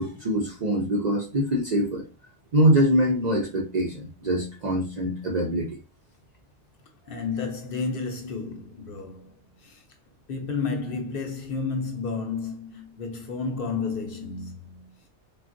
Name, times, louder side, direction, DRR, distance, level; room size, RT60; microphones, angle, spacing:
voice 1, 0.0-2.1 2.5-5.8, right 1 dB, 50° right, 0.5 m, -24 dB
voice 2, 7.1-9.8 10.3-14.9, left 4 dB, 60° left, 0.7 m, -31 dB
3.4 x 2.3 x 2.5 m
omnidirectional pair, 1.2 m